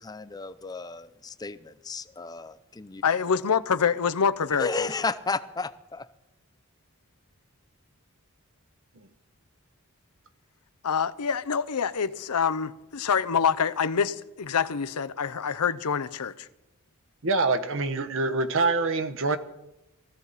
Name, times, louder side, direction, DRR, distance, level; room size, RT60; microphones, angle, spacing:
voice 1, 0.0-3.0 4.6-6.1, left 4 dB, 15° left, 0.5 m, -33 dB
voice 2, 3.0-4.9 10.8-16.5, left 6 dB, 90° left, 0.7 m, -26 dB
voice 3, 17.2-19.4, right 3 dB, 60° right, 1.0 m, -25 dB
18.0 x 14.0 x 4.1 m
head